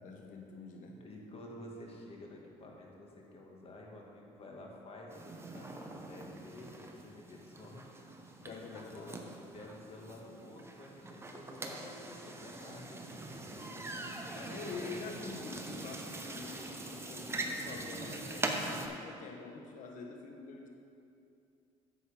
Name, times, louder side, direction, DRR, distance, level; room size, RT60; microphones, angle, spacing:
voice 1, 0.0-1.0 8.4-9.1 14.3-20.7, left 4 dB, 65° left, 2 dB, 1.2 m, -46 dB
voice 2, 1.0-7.9 8.5-9.2 9.5-13.8 14.3-14.6, left 1 dB, 40° left, -1 dB, 1.8 m, -51 dB
sound 1, 5.1-18.9, right 2 dB, 15° right, 0.9 m, -42 dB
9.8 x 7.7 x 3.5 m, 2.6 s
supercardioid pair, 75°, 15 cm